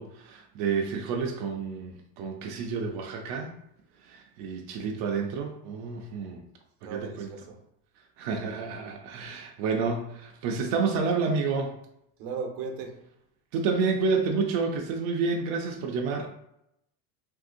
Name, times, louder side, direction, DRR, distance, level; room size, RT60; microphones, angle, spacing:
voice 1, 0.0-3.5 4.0-6.4 6.8-7.3 8.2-11.8 13.5-16.3, right 4 dB, 55° right, 0.5 m, -29 dB
voice 2, 6.8-7.6 12.2-13.0, right 5 dB, 80° right, 0.8 m, -36 dB
3.3 x 2.7 x 2.5 m
cardioid pair, 135°, 47 cm